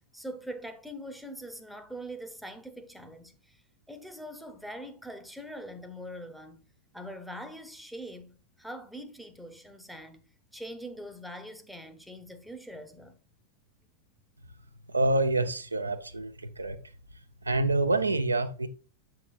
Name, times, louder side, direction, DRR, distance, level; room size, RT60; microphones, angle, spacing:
voice 1, 0.1-3.6 3.9-6.6 6.9-10.3 10.5-13.2, equal, ahead, 0.8 m, -43 dB
voice 2, 14.9-16.8 17.4-18.7, right 2 dB, 80° right, 0.6 m, -27 dB
7.5 x 5.7 x 2.4 m
figure-of-eight pair, 90°, 0 cm